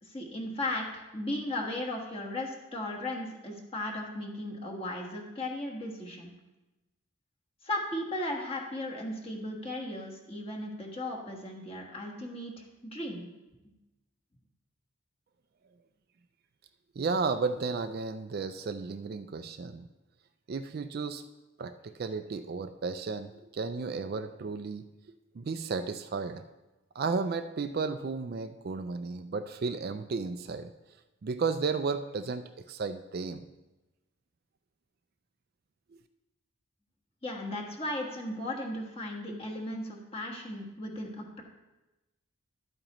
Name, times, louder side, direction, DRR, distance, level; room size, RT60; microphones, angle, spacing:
voice 1, 0.0-6.3 7.6-12.5 12.8-13.2 37.2-41.4, left 1 dB, 25° left, -1 dB, 1.4 m, -36 dB
voice 2, 17.0-19.8 20.5-21.2 21.6-24.9 25.4-26.4 27.0-30.7 31.2-33.5, right 4 dB, 45° right, 9 dB, 0.3 m, -33 dB
11.5 x 8.8 x 3.0 m, 1.0 s
head